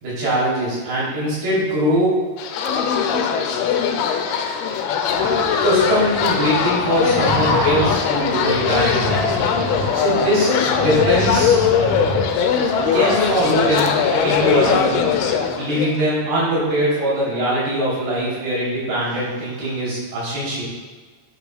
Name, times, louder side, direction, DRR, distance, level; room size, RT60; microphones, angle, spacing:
voice 1, 0.0-2.2 5.2-5.3 5.6-9.2 9.9-11.6 12.9-15.1 15.6-20.6, right 1 dB, 75° right, -8 dB, 5.2 m, -21 dB
sound 1, 2.4-16.0, left 7 dB, 85° left, 2.5 m, -20 dB
sound 2, 5.1-15.5, right 1 dB, 60° right, 3.5 m, -28 dB
11.0 x 9.8 x 2.3 m, 1.4 s
omnidirectional pair, 4.5 m